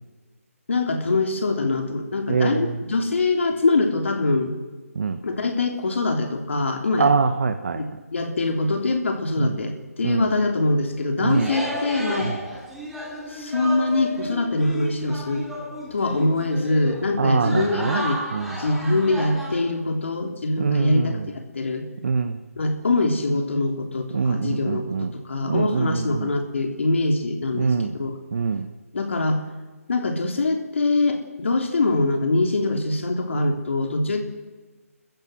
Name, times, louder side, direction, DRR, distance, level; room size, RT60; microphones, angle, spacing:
voice 1, 0.7-4.5 5.2-7.1 7.8-12.3 13.3-15.5 15.9-18.2 18.6-21.9 22.6-28.1 28.9-29.4 29.9-34.2, left 2 dB, 55° left, 4 dB, 3.5 m, -23 dB
voice 2, 2.3-2.8 4.9-5.2 7.0-7.8 9.4-9.6 10.0-10.3 11.2-11.5 12.2-12.4 17.2-18.0 18.3-18.6 20.6-21.3 22.0-22.4 24.1-25.1 25.4-26.3 27.6-27.9 28.3-28.7, right 5 dB, 45° right, 9 dB, 1.2 m, -23 dB
sound 1, 11.0-11.1 11.3-19.6, equal, 5° right, 2.8 m, -33 dB
28.5 x 15.0 x 7.9 m, 1.3 s
figure-of-eight pair, 165°, 8 cm